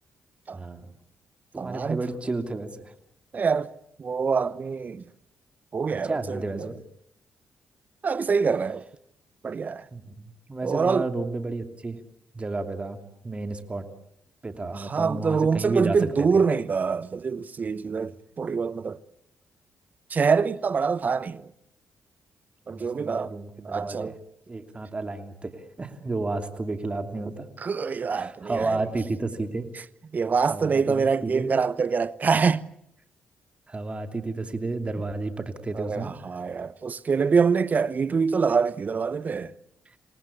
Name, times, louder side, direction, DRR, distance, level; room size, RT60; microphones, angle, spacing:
voice 1, 0.5-0.9 1.5-2.9 5.9-6.8 9.9-12.0 12.3-13.0 13.2-13.9 14.4-16.4 17.9-18.1 22.7-24.2 24.5-27.5 28.1-29.7 30.5-31.5 33.7-36.2, right 3 dB, 30° right, 2.9 m, -32 dB
voice 2, 1.6-2.0 3.3-3.7 4.0-5.0 5.7-6.7 8.0-8.8 9.4-9.8 10.6-11.1 14.7-19.0 20.1-21.5 22.7-23.3 23.6-24.1 27.6-28.8 30.1-32.6 35.7-39.5, right 5 dB, 45° right, 0.9 m, -25 dB
28.0 x 19.0 x 8.5 m
supercardioid pair, 55°, 4 cm